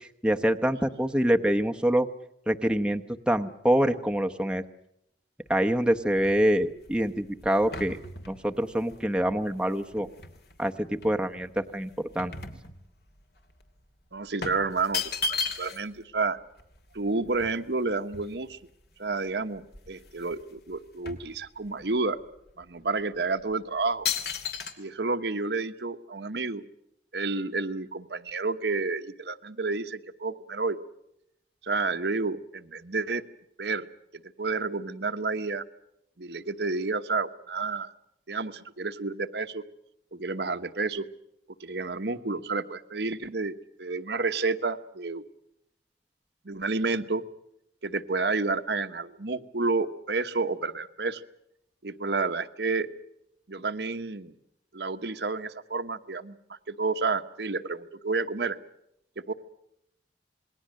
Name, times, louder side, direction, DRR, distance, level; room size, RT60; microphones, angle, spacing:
voice 1, 0.0-2.1 2.5-4.6 5.5-8.0 8.3-10.1 10.6-12.3, equal, 5° right, 4 dB, 0.9 m, -25 dB
sound 1, 5.5-10.6 11.0-13.2 13.5-13.7 14.4-16.0 16.3-16.4 16.6-18.7 19.3-19.4 19.6-20.4 20.7-21.9 22.5-22.6 23.3-23.5 24.0-24.7, left 5 dB, 60° left, 2.7 m, -36 dB
voice 2, 14.1-15.0 15.3-16.4 16.9-18.6 19.0-22.2 22.6-24.1 24.8-26.6 27.1-30.8 31.6-33.2 33.6-33.9 34.4-35.6 36.2-37.9 38.3-39.6 40.1-41.0 41.6-45.2 46.4-47.2 47.8-51.2 51.8-52.9 53.5-54.3 54.7-58.6 59.3-59.4, right 3 dB, 70° right, 8 dB, 1.1 m, -30 dB
27.5 x 21.0 x 6.5 m, 0.79 s
head